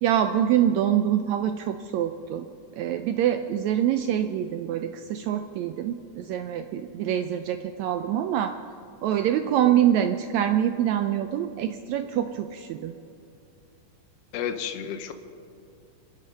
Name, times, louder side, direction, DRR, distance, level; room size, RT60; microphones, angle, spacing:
voice 1, 0.0-2.5 2.8-8.5 9.0-12.9, right 10 dB, 85° right, 8 dB, 1.6 m, -25 dB
voice 2, 14.3-15.1, left 8 dB, 70° left, 8 dB, 1.5 m, -31 dB
26.0 x 10.5 x 5.4 m, 2.4 s
omnidirectional pair, 3.8 m